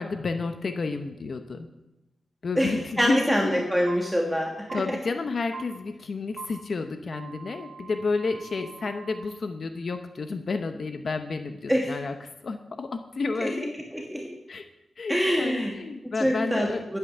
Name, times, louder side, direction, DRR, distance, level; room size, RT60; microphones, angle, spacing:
voice 1, 0.0-1.7 2.4-3.6 4.7-13.7 14.5-14.7 15.0-16.9, left 4 dB, 50° left, 7 dB, 0.9 m, -31 dB
voice 2, 2.6-5.0 11.7-11.9 13.4-13.5 13.9-14.2 15.1-15.7 16.0-17.0, equal, 5° right, 0 dB, 1.6 m, -25 dB
sound 1, 3.9-4.0 4.7-4.8 5.5-5.6 6.4-6.5 7.1-9.2, right 6 dB, 70° right, 3.2 m, -42 dB
11.5 x 9.0 x 6.9 m, 0.93 s
wide cardioid pair, 110°, 0 cm